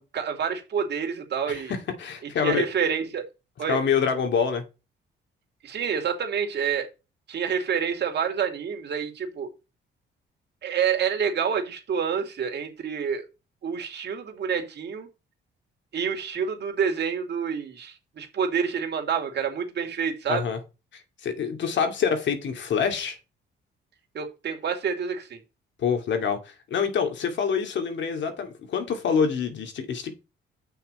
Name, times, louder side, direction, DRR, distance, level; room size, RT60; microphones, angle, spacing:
voice 1, 0.0-1.7 2.4-3.2 3.6-3.8 5.6-6.9 7.3-9.5 10.6-13.3 13.6-15.1 15.9-20.4 24.1-25.4, right 7 dB, 60° right, 2.6 m, -28 dB
voice 2, 1.5-2.7 3.7-4.6 20.3-20.6 20.9-23.2 25.8-30.1, left 6 dB, 65° left, 2.3 m, -26 dB
9.0 x 5.8 x 4.3 m
cardioid pair, 90°, 20 cm